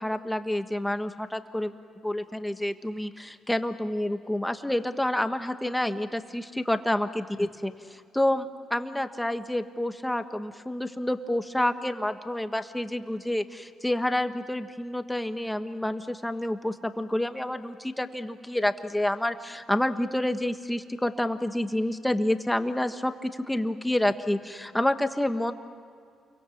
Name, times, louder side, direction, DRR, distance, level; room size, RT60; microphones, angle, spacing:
voice 1, 0.0-25.5, left 1 dB, 5° left, 8 dB, 1.4 m, -28 dB
29.0 x 23.5 x 7.2 m, 2.3 s
cardioid pair, 90°, 0 cm